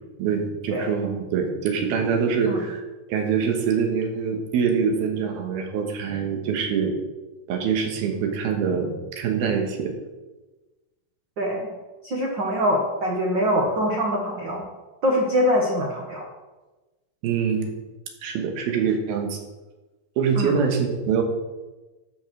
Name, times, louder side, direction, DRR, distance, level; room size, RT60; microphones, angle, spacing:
voice 1, 0.2-2.8 3.1-6.9 7.5-9.9 17.2-17.7 18.2-19.4 20.2-21.2, right 6 dB, 85° right, 3 dB, 3.3 m, -24 dB
voice 2, 11.4-11.7 12.0-14.6 15.0-16.2 20.3-20.6, equal, 70° right, -1 dB, 1.0 m, -23 dB
13.0 x 5.5 x 6.3 m, 1.2 s
omnidirectional pair, 4.3 m